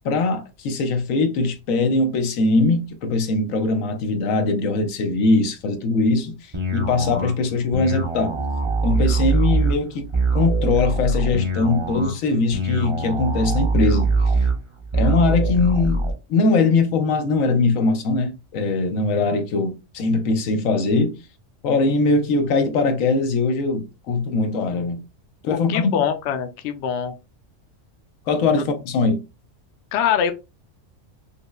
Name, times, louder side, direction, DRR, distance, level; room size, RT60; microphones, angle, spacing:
voice 1, 0.0-6.4 6.7-8.4 8.8-10.1 10.3-14.1 14.9-21.2 21.6-25.0 25.5-26.0 28.3-29.2, left 3 dB, 90° left, 1.1 m, -21 dB
sound 1, 6.5-16.1, right 3 dB, 30° right, 0.5 m, -23 dB
voice 2, 25.7-27.1 29.9-30.3, left 8 dB, 65° left, 0.8 m, -23 dB
5.3 x 2.0 x 2.2 m
omnidirectional pair, 1.3 m